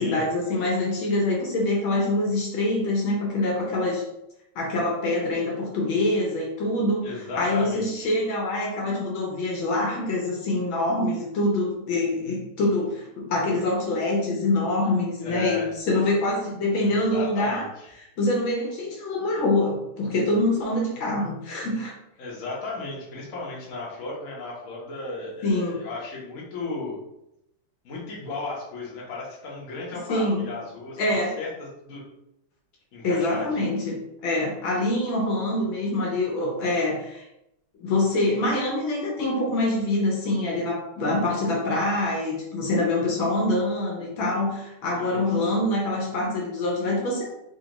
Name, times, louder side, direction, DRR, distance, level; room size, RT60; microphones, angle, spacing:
voice 1, 0.0-4.0 4.5-7.1 7.4-17.6 18.0-22.0 25.4-25.8 30.1-30.5 31.0-31.4 33.0-37.3 37.8-47.3, left 2 dB, 70° left, -1 dB, 1.5 m, -25 dB
voice 2, 7.0-8.1 15.2-15.7 16.8-17.9 22.2-27.0 27.8-31.0 31.4-32.0 32.9-33.8 44.9-45.5, left 3 dB, 50° left, -4 dB, 1.1 m, -35 dB
3.9 x 2.7 x 2.9 m, 0.84 s
omnidirectional pair, 2.4 m